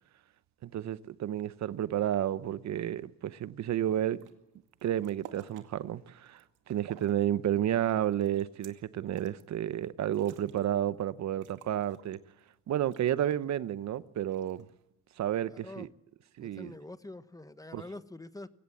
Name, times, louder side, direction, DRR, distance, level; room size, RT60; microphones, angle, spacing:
voice 1, 0.6-4.2 4.8-12.2 12.7-14.6 15.2-15.9 16.4-16.7 17.7-17.8, right 11 dB, 65° right, 0.8 m, -31 dB
sound 1, 4.1-4.3 4.7-5.7 6.1-7.2 7.6-9.4 9.8-9.9 10.1-10.8 11.1-11.2 11.4-12.5 12.9-13.4 14.3-14.8, right 9 dB, 90° right, 2.3 m, -52 dB
voice 2, 15.5-15.9 16.4-18.5, left 2 dB, 10° left, 1.0 m, -45 dB
22.5 x 17.5 x 7.7 m
cardioid pair, 90°, 30 cm